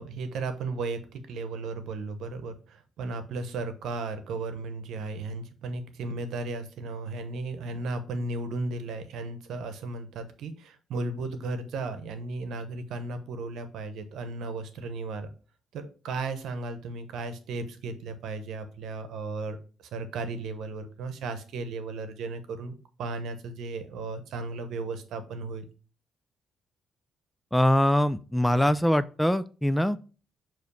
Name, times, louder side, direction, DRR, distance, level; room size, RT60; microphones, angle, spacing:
voice 1, 0.0-15.3 15.7-19.6 19.9-25.7, right 3 dB, 80° right, 9 dB, 1.0 m, -35 dB
voice 2, 27.5-30.0, left 1 dB, 5° left, 14 dB, 0.4 m, -23 dB
6.6 x 3.1 x 5.4 m, 0.36 s
cardioid pair, 90°, 0 cm